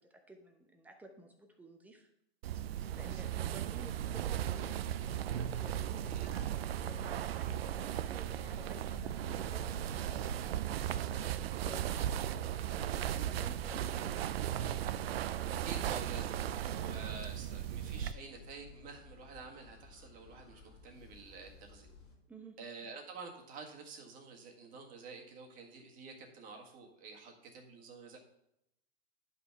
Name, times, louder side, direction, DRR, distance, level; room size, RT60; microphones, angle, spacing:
voice 1, 0.1-2.1 2.9-14.8 22.3-22.6, right 1 dB, 5° right, 4 dB, 0.8 m, -53 dB
sound 1, 2.4-18.1, right 11 dB, 65° right, 0.5 m, -36 dB
sound 2, 4.1-22.2, left 4 dB, 15° left, 2.3 m, -54 dB
voice 2, 15.6-21.9 22.6-28.2, right 4 dB, 25° right, 2 dB, 1.6 m, -49 dB
10.5 x 5.8 x 4.7 m, 0.80 s
hypercardioid pair, 150°, 32 cm